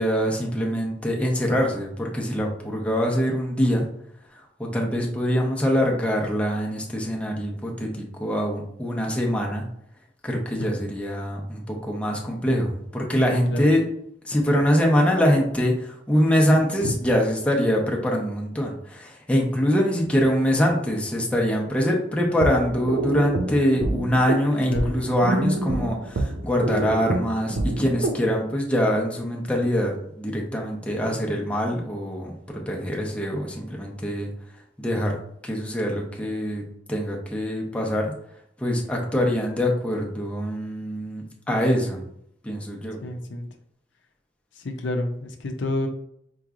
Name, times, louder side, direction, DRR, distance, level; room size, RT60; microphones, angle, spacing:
voice 1, 0.0-3.9 4.6-9.6 10.2-13.8 14.2-32.4 32.7-34.3 34.8-35.2 35.4-36.6 36.9-38.0 38.6-42.0 42.4-43.0, equal, 5° left, -1 dB, 0.7 m, -24 dB
voice 2, 13.3-13.7 16.8-16.9 24.7-24.9 43.0-43.5 44.6-45.9, left 1 dB, 75° left, 3 dB, 0.5 m, -28 dB
sound 1, 22.3-28.2, right 2 dB, 70° right, 0.5 m, -27 dB
4.6 x 3.0 x 2.4 m, 0.72 s
head